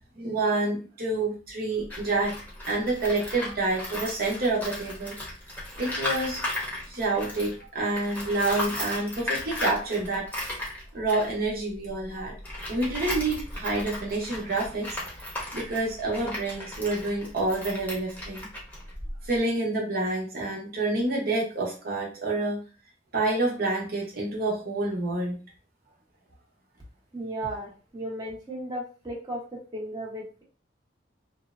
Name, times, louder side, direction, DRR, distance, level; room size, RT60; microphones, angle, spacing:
voice 1, 0.2-2.4 2.7-5.2 5.8-6.4 6.9-10.5 10.9-12.3 12.6-14.9 15.5-18.5 19.2-22.6 23.1-25.4, right 2 dB, 55° right, -2 dB, 0.8 m, -28 dB
Tools, 1.8-7.6 7.9-19.4, left 1 dB, 10° left, 0.8 m, -36 dB
voice 2, 27.1-30.4, right 1 dB, 25° right, -4 dB, 0.8 m, -35 dB
2.9 x 2.0 x 2.4 m, 0.36 s
head